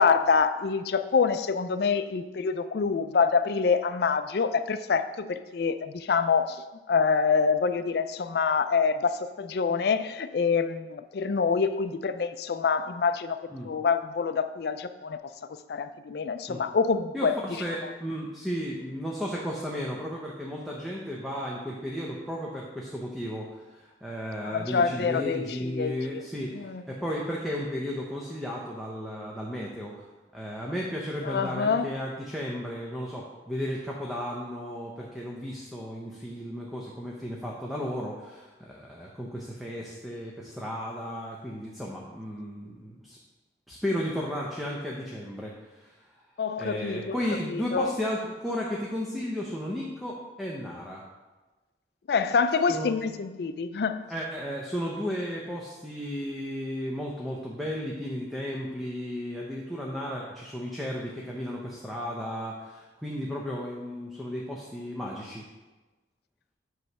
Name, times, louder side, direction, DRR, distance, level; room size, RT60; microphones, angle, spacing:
voice 1, 0.0-13.4 13.6-15.2 15.7-17.4 24.4-26.2 26.5-26.8 31.2-31.9 46.4-47.1 47.5-47.9 52.1-54.1, left 5 dB, 60° left, 10 dB, 0.4 m, -26 dB
voice 2, 17.1-30.1 30.3-43.2 43.7-46.2 46.6-51.0 52.7-53.0 54.1-65.4, equal, ahead, -4 dB, 0.7 m, -34 dB
8.1 x 3.2 x 5.9 m, 1.2 s
head